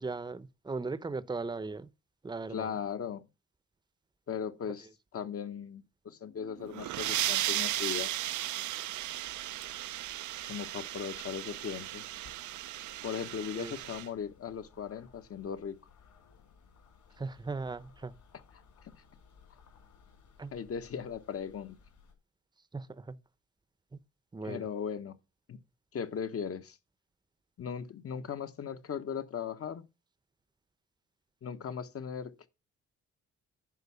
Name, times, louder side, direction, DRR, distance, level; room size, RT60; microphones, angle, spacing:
voice 1, 0.0-1.9 2.2-2.8 13.5-13.8 17.2-18.1 20.4-20.6 22.7-23.1 23.9-24.0 24.3-24.7, right 3 dB, 15° right, 0.8 m, -38 dB
voice 2, 2.5-3.3 4.3-4.9 5.1-8.1 10.4-12.0 13.0-15.8 20.5-21.8 24.4-25.2 25.5-25.6 25.9-26.8 27.6-29.9 31.4-32.5, left 7 dB, 50° left, 1.2 m, -38 dB
sound 1, 6.6-14.1, right 14 dB, 75° right, 0.7 m, -35 dB
sound 2, 9.1-22.1, left 6 dB, 70° left, 6.1 m, -61 dB
11.0 x 4.6 x 7.1 m
cardioid pair, 90°, 30 cm